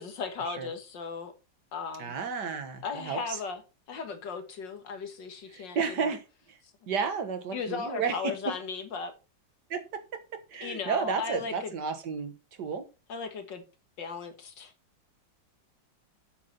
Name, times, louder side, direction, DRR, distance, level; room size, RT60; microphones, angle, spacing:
voice 1, 0.0-1.3 1.7-2.2 2.8-3.6 3.9-6.2 7.5-9.1 10.6-11.7 13.1-13.6 14.0-14.7, left 5 dB, 70° left, 2.2 m, -36 dB
voice 2, 2.0-3.4 5.5-6.6 6.9-8.3 9.7-12.3 12.6-12.9, right 5 dB, 60° right, 1.9 m, -32 dB
9.1 x 7.7 x 4.3 m
omnidirectional pair, 2.0 m